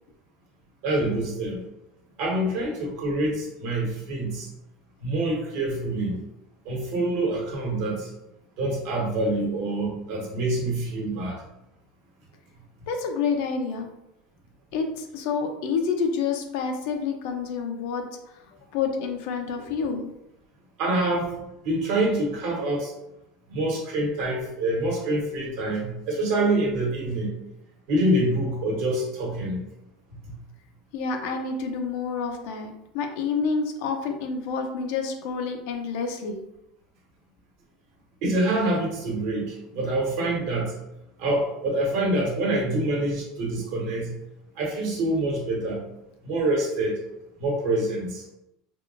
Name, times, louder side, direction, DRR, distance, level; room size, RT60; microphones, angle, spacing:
voice 1, 0.8-1.6 2.2-4.5 5.0-6.2 6.6-8.1 8.6-11.4 20.8-22.9 23.5-27.3 27.9-29.7 30.3-30.4 38.2-40.8 41.2-44.1 44.6-45.9 46.2-47.0 47.4-48.2, right 1 dB, 65° right, -2 dB, 1.1 m, -26 dB
voice 2, 12.9-13.9 14.7-18.0 18.7-20.1 30.9-36.5, left 5 dB, 70° left, 4 dB, 0.5 m, -28 dB
3.5 x 2.4 x 2.4 m, 0.87 s
supercardioid pair, 135°, 0 cm